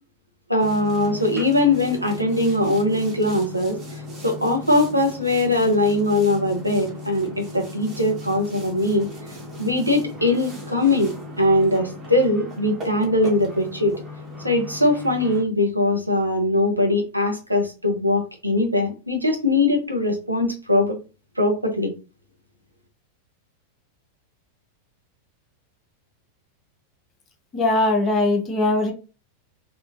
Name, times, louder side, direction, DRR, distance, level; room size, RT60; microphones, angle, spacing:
voice 1, 0.5-9.1 9.6-14.0 14.4-21.0 21.4-21.9, left 1 dB, 85° right, 0.7 m, -21 dB
Boat Water vehicle, 0.6-15.4, left 2 dB, 25° right, 1.3 m, -37 dB
voice 2, 27.5-28.9, left 2 dB, 25° left, 0.8 m, -20 dB
3.6 x 2.3 x 2.5 m
figure-of-eight pair, 90°, 0 cm